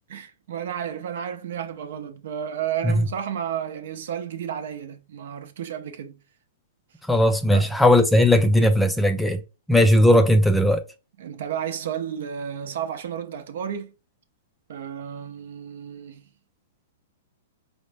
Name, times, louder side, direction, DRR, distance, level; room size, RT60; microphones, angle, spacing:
voice 1, 0.1-6.2 7.5-7.7 11.2-13.9 14.7-16.3, right 9 dB, 65° right, 0.7 m, -32 dB
voice 2, 7.1-9.4 9.7-10.8, left 1 dB, 5° left, 0.3 m, -17 dB
5.1 x 2.1 x 3.3 m
hypercardioid pair, 150°, 0 cm